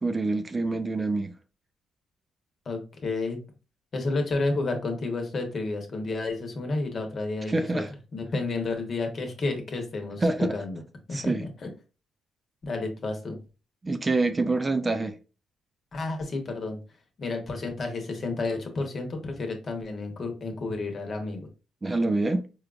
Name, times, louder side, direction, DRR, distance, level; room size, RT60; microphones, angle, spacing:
voice 1, 0.0-1.3 7.5-7.9 10.2-10.6 11.1-11.5 13.8-15.2 21.8-22.4, right 2 dB, 25° right, 0.3 m, -26 dB
voice 2, 2.6-3.4 3.9-7.8 8.1-10.8 11.1-11.7 12.6-13.4 15.9-16.8 17.2-21.5, left 3 dB, 45° left, 1.0 m, -31 dB
4.4 x 2.4 x 2.4 m
cardioid pair, 90°, 0 cm